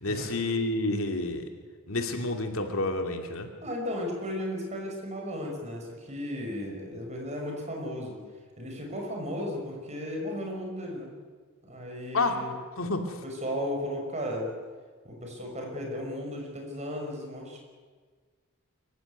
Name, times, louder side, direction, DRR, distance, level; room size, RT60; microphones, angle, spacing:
voice 1, 0.0-1.5 1.9-3.5 12.1-12.4 12.8-13.2, left 2 dB, 70° left, 5 dB, 2.6 m, -29 dB
voice 2, 3.6-8.2 8.6-11.1 11.6-12.5 12.8-12.9 13.2-14.5 15.0-17.6, equal, 30° right, 1 dB, 5.8 m, -35 dB
24.5 x 15.5 x 9.5 m, 1.5 s
head